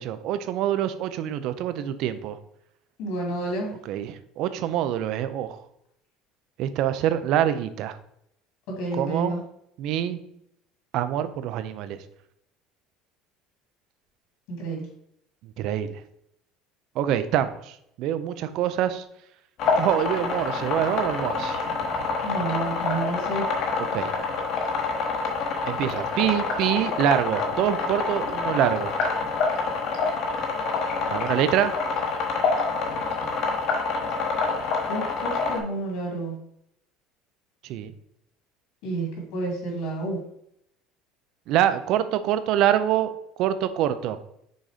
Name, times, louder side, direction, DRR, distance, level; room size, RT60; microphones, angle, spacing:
voice 1, 0.0-2.4 3.9-5.6 6.6-7.9 9.0-9.3 9.8-10.2 10.9-12.0 15.6-15.9 17.0-17.5 18.0-19.0 19.8-21.6 23.9-24.1 25.7-28.9 31.1-31.7 37.7-37.9 41.5-43.1 43.4-44.2, right 11 dB, 45° right, 12 dB, 0.5 m, -25 dB
voice 2, 3.0-3.7 8.7-9.4 14.6-14.9 22.2-23.4 34.9-36.3 38.8-40.2, right 2 dB, 60° left, 0 dB, 2.7 m, -30 dB
sound 1, 19.6-35.6, left 4 dB, 40° left, 1.1 m, -27 dB
6.2 x 4.0 x 5.0 m, 0.74 s
cardioid pair, 180°, 0 cm